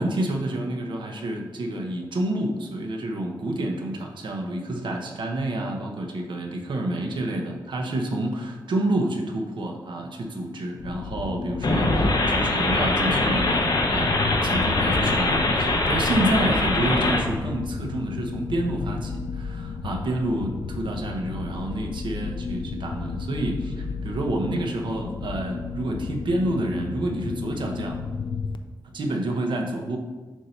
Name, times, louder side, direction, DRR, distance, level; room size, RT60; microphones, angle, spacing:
voice 1, 0.0-14.1 14.4-28.0 28.9-30.0, right 1 dB, 85° right, 2 dB, 0.9 m, -28 dB
sound 1, 10.8-28.6, left 4 dB, 90° left, 0.4 m, -33 dB
sound 2, 11.6-17.2, left 2 dB, 55° left, 0.8 m, -22 dB
7.2 x 2.7 x 5.6 m, 1.3 s
wide cardioid pair, 160°, 8 cm